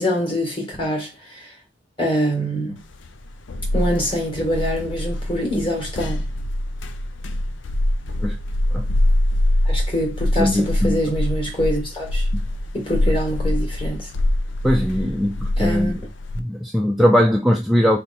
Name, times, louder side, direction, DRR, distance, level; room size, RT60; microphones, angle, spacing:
voice 1, 0.0-1.5 2.0-2.8 3.7-6.2 9.7-12.3 12.7-14.1 15.6-15.9, equal, 30° left, 1.8 m, -24 dB
sound 1, 2.9-16.4, left 1 dB, 75° left, 0.5 m, -24 dB
voice 2, 10.4-11.0 12.3-12.4 13.1-13.2 14.6-15.9 16.4-18.0, equal, ahead, 0.4 m, -20 dB
3.3 x 3.2 x 4.2 m
head